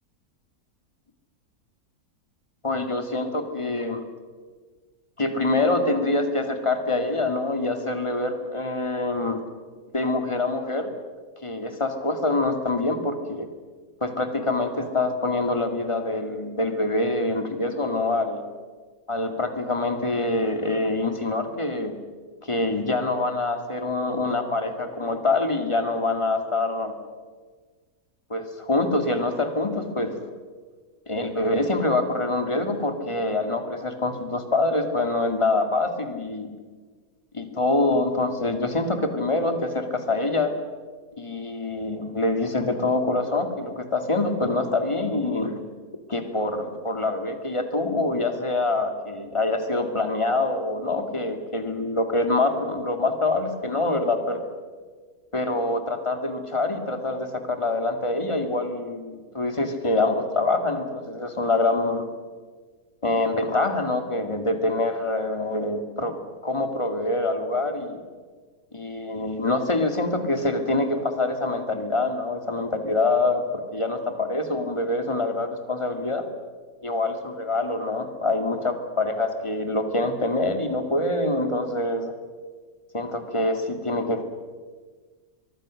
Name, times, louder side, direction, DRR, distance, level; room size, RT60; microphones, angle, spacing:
voice 1, 2.6-4.0 5.2-9.4 9.9-10.9 11.4-13.5 14.0-18.4 19.1-21.9 22.4-26.9 28.3-30.2 31.1-36.5 37.3-40.5 41.2-45.6 46.1-54.4 55.3-62.0 63.0-66.2 66.4-68.0 68.7-76.2 76.8-82.1 82.9-84.2, left 2 dB, 20° left, 6 dB, 2.2 m, -25 dB
23.5 x 23.0 x 6.4 m, 1.5 s
omnidirectional pair, 1.6 m